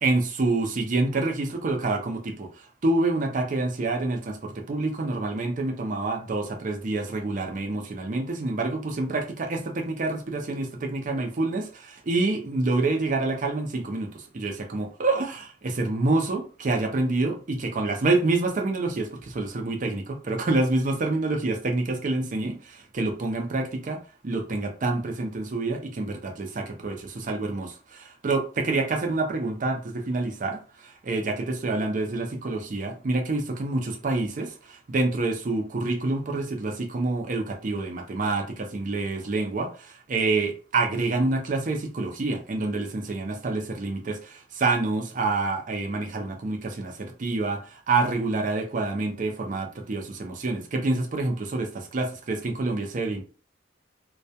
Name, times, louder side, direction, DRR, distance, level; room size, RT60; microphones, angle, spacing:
voice 1, 0.0-53.2, right 2 dB, 40° right, 0.5 m, -27 dB
2.3 x 2.1 x 2.7 m
head